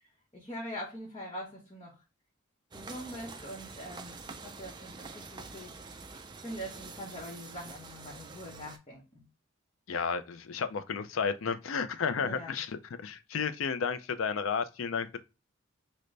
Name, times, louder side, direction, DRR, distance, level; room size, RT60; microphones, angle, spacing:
voice 1, 0.3-2.0 2.7-5.8 6.4-9.2 12.2-12.6, equal, 25° left, 0.9 m, -43 dB
sound 1, 2.7-8.8, right 4 dB, 20° right, 0.3 m, -46 dB
voice 2, 9.9-15.2, left 6 dB, 80° left, 0.4 m, -32 dB
3.8 x 2.1 x 3.1 m
head